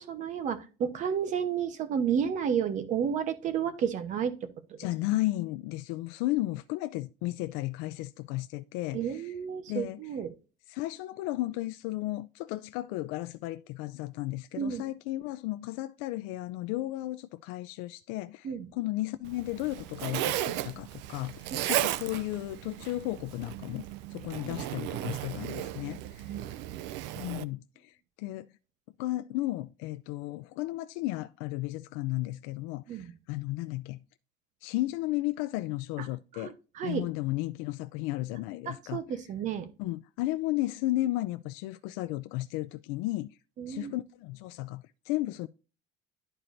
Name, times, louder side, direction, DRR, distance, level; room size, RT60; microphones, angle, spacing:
voice 1, 0.0-4.8 8.9-10.3 14.5-14.9 18.4-18.7 21.5-21.7 24.3-24.7 26.3-26.5 32.9-33.1 36.0-36.1 36.3-37.0 38.7-39.7 43.6-43.9, right 8 dB, 35° right, 0.9 m, -32 dB
voice 2, 4.8-9.3 9.7-10.0 10.7-26.3 27.2-28.5 29.0-34.0 34.6-36.6 36.8-39.0 39.8-43.3 43.7-45.5, left 17 dB, 85° left, 0.5 m, -34 dB
Zipper (clothing), 19.2-27.4, right 14 dB, 60° right, 0.5 m, -35 dB
11.5 x 4.4 x 2.6 m
cardioid pair, 170°, 21 cm